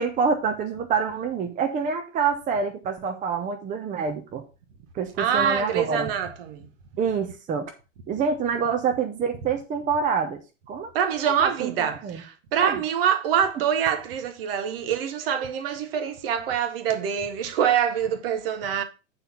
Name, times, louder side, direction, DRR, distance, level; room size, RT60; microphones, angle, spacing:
voice 1, 0.0-4.4 4.9-6.1 7.0-7.7 8.1-10.4 10.7-10.9 11.4-12.2 12.6-12.8, right 6 dB, 20° right, 1.0 m, -26 dB
voice 2, 5.2-6.7 10.9-18.8, right 8 dB, 45° right, 1.3 m, -25 dB
8.1 x 4.4 x 5.6 m
figure-of-eight pair, 95°, 38 cm